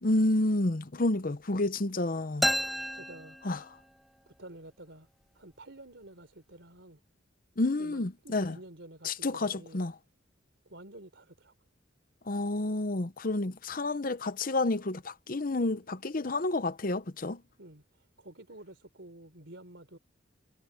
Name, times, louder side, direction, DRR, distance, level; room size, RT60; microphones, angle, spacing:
voice 1, 0.0-2.5 3.4-3.6 7.6-8.6 9.0-9.9 12.3-17.4, left 2 dB, 45° left, 0.8 m, -30 dB
sound 1, 2.4-4.1, equal, ahead, 1.3 m, -32 dB
voice 2, 2.9-3.4 4.3-5.1 5.3-7.0 7.8-9.8 10.7-11.5 17.6-20.0, right 1 dB, 70° right, 4.3 m, -50 dB
head